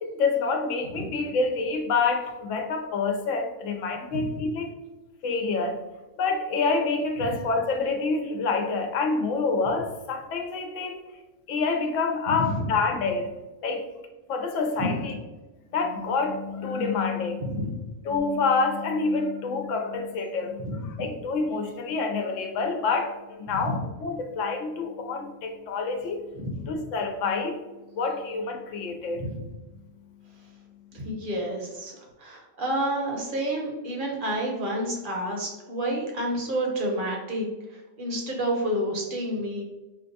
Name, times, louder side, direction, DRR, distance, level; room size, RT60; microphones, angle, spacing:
voice 1, 0.0-4.7 5.2-5.8 6.2-11.0 11.5-13.3 13.6-13.9 14.3-15.1 15.7-17.7 18.0-26.2 26.7-27.6 27.9-29.2, left 4 dB, 80° left, 4 dB, 0.9 m, -27 dB
voice 2, 4.1-4.4 7.2-7.3 12.3-12.6 14.8-14.9 17.4-17.8 20.6-21.0 23.5-23.8 26.4-26.7 29.2-29.4 30.9-39.6, right 1 dB, 50° right, -1 dB, 0.8 m, -30 dB
4.4 x 2.2 x 2.6 m, 1.1 s
omnidirectional pair, 1.3 m